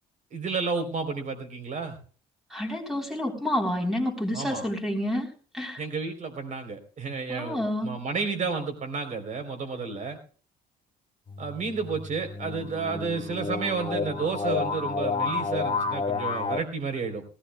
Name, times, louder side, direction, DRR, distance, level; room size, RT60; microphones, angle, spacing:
voice 1, 0.3-2.0 4.3-4.6 5.8-10.2 11.4-17.2, right 4 dB, 45° right, 6 dB, 3.7 m, -31 dB
voice 2, 2.5-5.8 7.3-7.9, left 1 dB, ahead, 2 dB, 3.7 m, -29 dB
sound 1, 11.3-16.6, left 4 dB, 30° left, 1.2 m, -30 dB
18.5 x 16.0 x 2.3 m, 0.39 s
cardioid pair, 110°, 17 cm